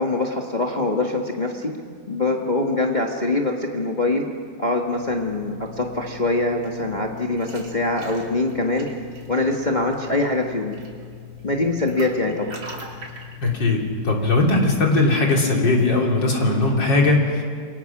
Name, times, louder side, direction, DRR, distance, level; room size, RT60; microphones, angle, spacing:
voice 1, 0.0-1.7 2.1-4.2 4.6-8.9 9.3-10.8 11.4-12.5, left 2 dB, 25° left, 1 dB, 1.5 m, -23 dB
sound 1, 4.8-14.8, left 4 dB, 80° right, 3.7 m, -40 dB
voice 2, 13.4-17.4, left 2 dB, 75° left, 0 dB, 4.0 m, -19 dB
29.0 x 22.0 x 6.0 m, 2.1 s
omnidirectional pair, 2.0 m